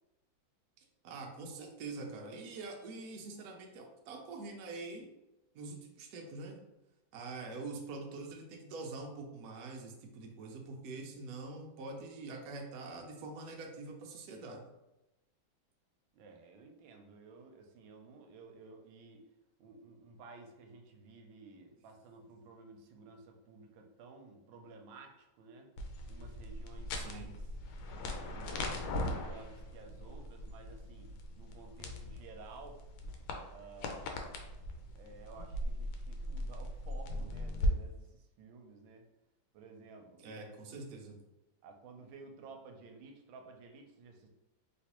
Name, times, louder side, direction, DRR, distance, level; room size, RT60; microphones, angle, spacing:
voice 1, 1.0-5.0 5.5-6.6 7.1-14.6 26.9-27.3 40.2-41.2, right 3 dB, 70° right, 1 dB, 0.9 m, -45 dB
voice 2, 16.1-19.2 19.6-25.7 26.1-27.3 28.2-32.8 33.5-34.5 35.0-39.1 39.5-40.6 41.6-44.3, right 4 dB, 85° right, 3 dB, 1.3 m, -54 dB
sound 1, 25.8-37.7, left 1 dB, 85° left, 1.3 m, -39 dB
3.1 x 3.1 x 2.9 m, 0.99 s
omnidirectional pair, 2.1 m